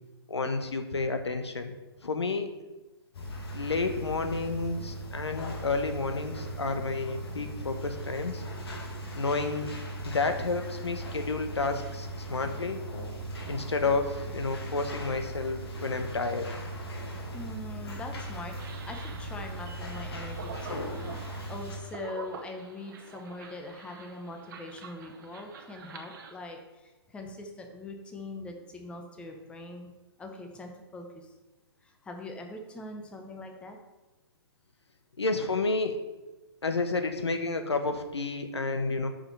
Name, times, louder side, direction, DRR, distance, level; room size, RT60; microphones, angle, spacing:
voice 1, 0.3-1.7 2.0-2.5 3.5-8.4 9.1-9.7 10.0-12.8 13.5-16.5 35.2-36.0 36.6-39.1, left 3 dB, 85° left, 7 dB, 1.0 m, -30 dB
sound 1, 3.1-21.8, right 1 dB, 65° left, 1.8 m, -38 dB
voice 2, 17.3-18.6 18.9-20.9 21.3-29.9 30.2-31.3 31.8-33.8, left 2 dB, 10° left, 3 dB, 0.8 m, -42 dB
sound 2, 18.6-26.3, right 5 dB, 50° right, 1.0 m, -47 dB
5.8 x 5.6 x 5.5 m, 1.1 s
figure-of-eight pair, 130°, 14 cm